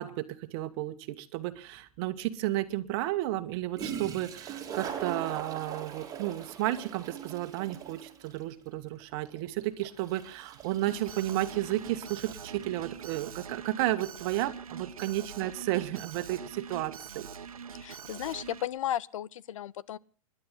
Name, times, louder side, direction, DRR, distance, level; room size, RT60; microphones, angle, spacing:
voice 1, 0.0-17.3, right 15 dB, 45° right, 1.9 m, -32 dB
Toilet flush, 1.7-1.8 3.5-3.6 3.8-13.1, right 8 dB, 20° right, 3.7 m, -42 dB
Alarm, 10.9-18.7, right 7 dB, 75° right, 1.5 m, -44 dB
voice 2, 17.8-20.0, left 11 dB, 60° left, 0.9 m, -34 dB
29.5 x 12.0 x 3.8 m
hypercardioid pair, 110°, 18 cm